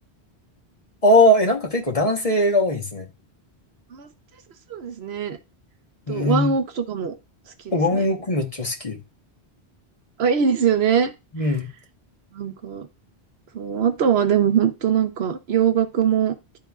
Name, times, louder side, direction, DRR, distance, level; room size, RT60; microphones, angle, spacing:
voice 1, 1.0-3.1 6.1-6.5 7.7-9.0 11.3-11.7, left 1 dB, 35° left, 1.1 m, -20 dB
voice 2, 4.7-5.4 6.1-7.1 7.6-8.1 10.2-11.1 12.3-12.9 13.5-16.3, right 8 dB, 70° right, 1.0 m, -22 dB
11.0 x 3.7 x 2.4 m
omnidirectional pair, 1.1 m